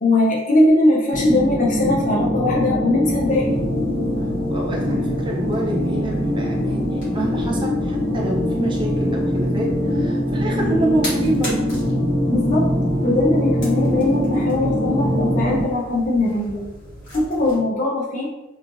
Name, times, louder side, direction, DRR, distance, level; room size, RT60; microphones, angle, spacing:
voice 1, 0.0-3.6 12.3-12.6 13.0-16.6 17.1-18.3, left 2 dB, 40° left, -3 dB, 0.7 m, -20 dB
sound 1, 1.1-15.6, equal, 65° right, 0.9 m, -22 dB
sound 2, 3.1-17.6, left 1 dB, 60° left, 1.4 m, -39 dB
voice 2, 4.2-11.7, right 1 dB, 25° right, -1 dB, 0.4 m, -27 dB
3.1 x 2.4 x 2.5 m, 0.99 s
head